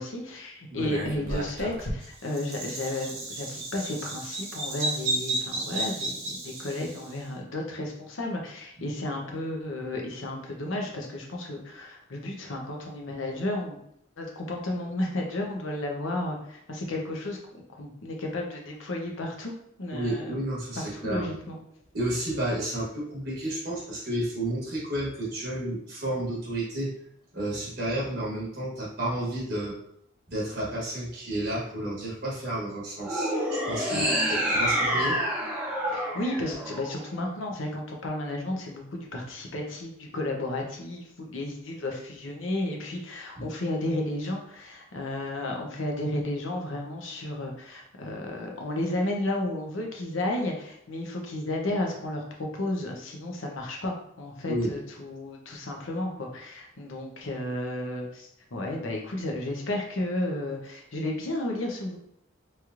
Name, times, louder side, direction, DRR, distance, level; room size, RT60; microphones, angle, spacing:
voice 1, 0.0-13.8 14.2-19.5 19.8-20.4 20.8-21.6 33.9-34.2 35.9-62.0, left 1 dB, 75° left, 1 dB, 0.7 m, -33 dB
Bird vocalization bird call bird song, 0.8-7.1, right 2 dB, 85° right, 0.8 m, -33 dB
voice 2, 19.9-21.4 21.9-26.9 27.3-29.7 30.3-35.2 43.4-43.5 54.5-54.7, right 1 dB, 50° right, -5 dB, 1.0 m, -31 dB
sound 1, 33.0-37.4, equal, 5° right, 0.6 m, -28 dB
3.1 x 2.9 x 2.4 m, 0.74 s
head